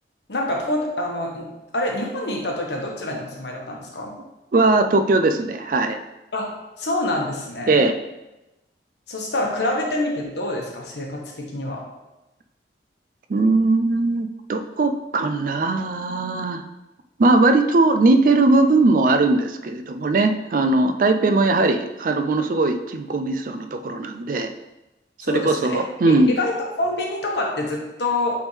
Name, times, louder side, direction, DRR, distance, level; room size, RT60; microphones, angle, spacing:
voice 1, 0.3-1.5 1.7-4.1 6.3-6.5 6.8-7.8 9.1-11.8 25.2-26.5 26.8-28.4, left 1 dB, 75° left, 0 dB, 1.2 m, -26 dB
voice 2, 4.5-6.0 7.7-7.9 13.3-16.6 17.2-24.5 25.3-26.4, right 2 dB, 50° right, 7 dB, 0.4 m, -19 dB
8.1 x 3.6 x 3.2 m, 0.99 s
head